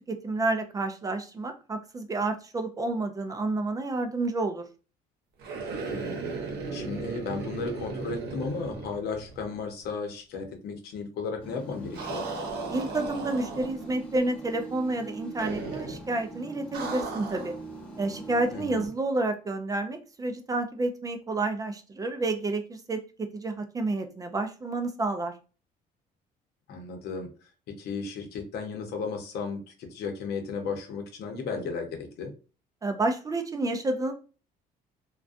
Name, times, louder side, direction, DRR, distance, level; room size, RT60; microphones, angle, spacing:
voice 1, 0.1-4.7 12.7-17.5 18.0-25.3 32.8-34.1, right 2 dB, 20° right, 6 dB, 0.3 m, -30 dB
sound 1, 5.4-9.6 9.8-9.9 11.9-14.0 15.4-16.0 16.7-17.6, right 4 dB, 75° right, 0.8 m, -36 dB
voice 2, 5.9-6.3 6.7-12.3 18.5-18.8 26.7-27.3 27.7-32.3, left 4 dB, 75° left, 4 dB, 0.7 m, -34 dB
sound 2, 11.4-18.9, right 2 dB, 5° left, 0.8 m, -42 dB
2.4 x 2.2 x 2.4 m, 0.35 s
cardioid pair, 110°, 17 cm